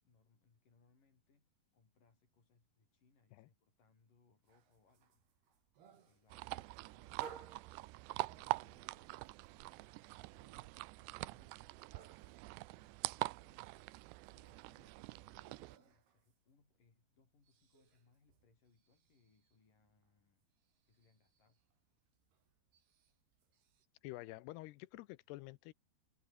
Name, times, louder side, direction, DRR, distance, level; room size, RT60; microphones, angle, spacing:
voice 1, 0.0-5.7 6.0-11.9 12.2-20.5 20.9-21.6, left 4 dB, 50° left, 7.5 m, -74 dB
sound 1, 4.5-17.0 17.2-23.9, right 8 dB, 65° right, 5.1 m, -61 dB
sound 2, 6.3-15.8, right 22 dB, 90° right, 2.8 m, -44 dB
voice 2, 24.0-25.7, left 19 dB, 80° left, 2.7 m, -49 dB
omnidirectional pair, 4.9 m